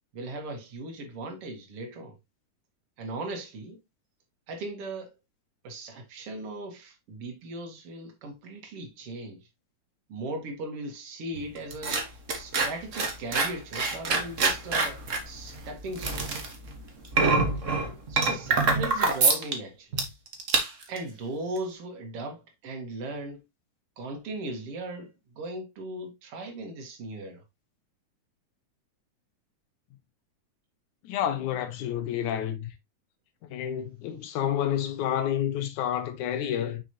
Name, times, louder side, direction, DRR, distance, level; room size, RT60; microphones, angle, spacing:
voice 1, 0.1-2.2 3.0-3.8 4.5-5.1 5.6-9.4 10.1-12.0 12.3-15.0 15.3-16.3 18.1-20.0 20.9-23.4 24.0-27.4, right 2 dB, 50° right, 2.5 m, -38 dB
sound 1, 11.3-19.5 19.9-20.1 20.3-21.0 21.6-21.7, right 3 dB, 75° right, 0.6 m, -26 dB
voice 2, 31.0-32.7 33.5-36.8, left 10 dB, 75° left, 2.5 m, -29 dB
6.2 x 6.0 x 2.8 m
omnidirectional pair, 3.6 m